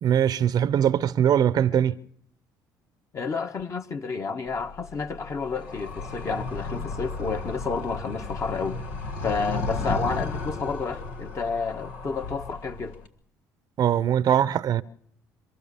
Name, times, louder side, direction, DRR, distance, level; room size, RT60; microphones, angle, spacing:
voice 1, 0.0-1.9 13.8-14.8, right 9 dB, 60° right, 0.7 m, -21 dB
voice 2, 3.1-8.8 9.2-13.0, left 4 dB, 40° left, 1.5 m, -30 dB
Animal, 4.5-13.1, left 3 dB, 90° left, 1.6 m, -34 dB
25.5 x 14.5 x 7.0 m
supercardioid pair, 70°, 8 cm